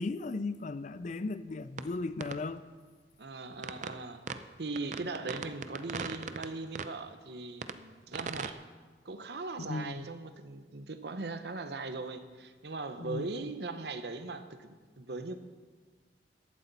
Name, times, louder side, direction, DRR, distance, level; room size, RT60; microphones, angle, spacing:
voice 1, 0.0-2.6 9.6-10.1 13.0-13.3, left 3 dB, 45° left, 0.4 m, -36 dB
sound 1, 1.8-1.9 2.2-2.4 3.6-4.0 4.3-4.4 4.8-6.5 6.8-6.9 7.6-7.8 8.1-8.5, right 5 dB, 45° right, 0.5 m, -37 dB
voice 2, 3.2-4.2 4.6-8.6 9.0-15.4, right 3 dB, 70° right, 0.9 m, -39 dB
15.0 x 12.0 x 4.1 m
head